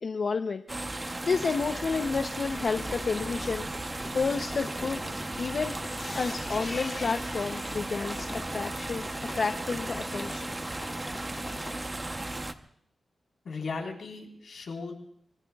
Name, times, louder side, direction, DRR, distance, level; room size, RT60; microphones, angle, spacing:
voice 1, 0.0-3.7 4.1-5.0 5.4-5.7 6.1-9.0 9.3-10.5, left 4 dB, 50° left, 6 dB, 0.7 m, -30 dB
sound 1, 0.7-12.5, right 2 dB, 20° right, 0.9 m, -35 dB
sound 2, 2.5-11.8, left 2 dB, 35° left, 2.4 m, -44 dB
voice 2, 13.4-14.9, left 4 dB, 70° left, 0 dB, 4.2 m, -36 dB
25.5 x 24.0 x 2.4 m, 0.67 s
wide cardioid pair, 130°, 0 cm